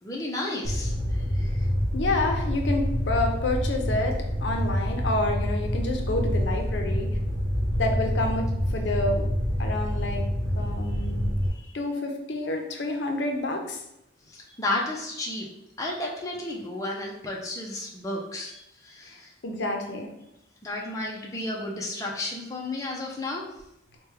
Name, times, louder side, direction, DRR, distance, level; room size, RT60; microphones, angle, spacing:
voice 1, 0.0-1.7 10.9-11.1 11.5-11.8 14.3-15.5 15.8-19.3 20.6-23.5, left 2 dB, 20° left, -2 dB, 0.5 m, -33 dB
Fire, 0.6-11.5, equal, 55° right, 0.9 m, -27 dB
voice 2, 1.9-7.1 7.8-8.5 8.7-9.3 9.6-10.3 10.6-11.3 11.7-13.8 19.4-20.1, left 2 dB, 75° left, 3 dB, 0.6 m, -28 dB
4.7 x 2.2 x 3.2 m, 0.84 s
head